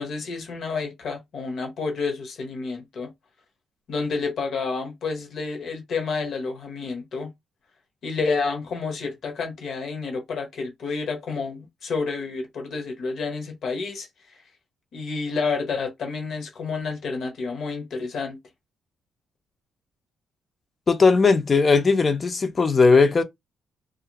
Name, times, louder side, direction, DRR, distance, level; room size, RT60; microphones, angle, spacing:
voice 1, 0.0-3.1 3.9-7.3 8.0-14.1 14.9-18.4, left 4 dB, 65° left, 0.9 m, -29 dB
voice 2, 20.9-23.2, left 4 dB, 35° left, 0.5 m, -18 dB
2.4 x 2.1 x 2.9 m
cardioid pair, 90°, 0 cm